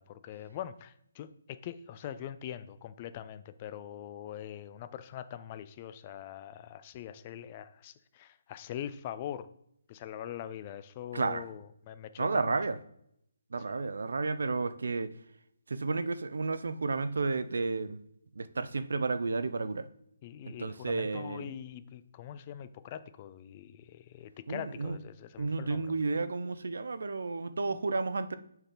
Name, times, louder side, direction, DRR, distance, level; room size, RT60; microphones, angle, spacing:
voice 1, 0.0-9.5 9.9-12.6 13.7-13.9 20.2-25.8, left 10 dB, 20° left, 13 dB, 0.3 m, -43 dB
voice 2, 11.1-11.4 12.2-12.8 13.5-15.1 15.7-18.0 18.4-19.9 20.5-21.5 24.5-25.0 25.4-28.3, right 3 dB, 75° right, 13 dB, 0.7 m, -32 dB
9.8 x 4.5 x 3.9 m, 0.75 s
hypercardioid pair, 170°, 0 cm